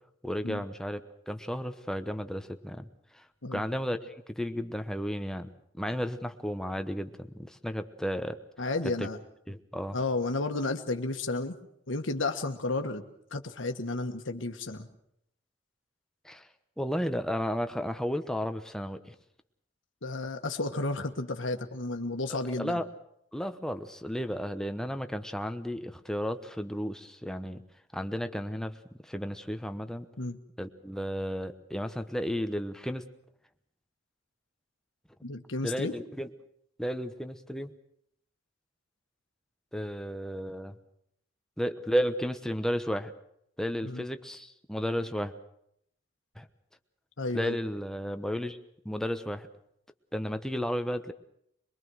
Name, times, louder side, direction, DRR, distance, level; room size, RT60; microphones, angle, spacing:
voice 1, 0.2-1.0 1.3-2.9 3.1-3.2 3.5-5.5 5.7-8.4 9.0-9.1 9.5-10.0 16.2-16.5 16.8-19.1 22.3-22.9 23.3-27.6 27.9-28.7 29.0-30.1 30.6-33.0 35.6-36.3 36.8-37.7 39.7-40.7 41.6-43.1 43.6-45.3 46.4-46.5 47.3-48.6 48.8-49.5 50.1-51.1, equal, 5° left, 8 dB, 1.0 m, -33 dB
voice 2, 8.6-9.2 9.9-11.6 11.9-13.0 13.3-14.9 20.0-22.8 30.2-30.4 35.2-35.9 43.8-44.0 47.2-47.6, left 2 dB, 90° left, 5 dB, 1.5 m, -32 dB
23.0 x 22.5 x 6.3 m, 0.72 s
head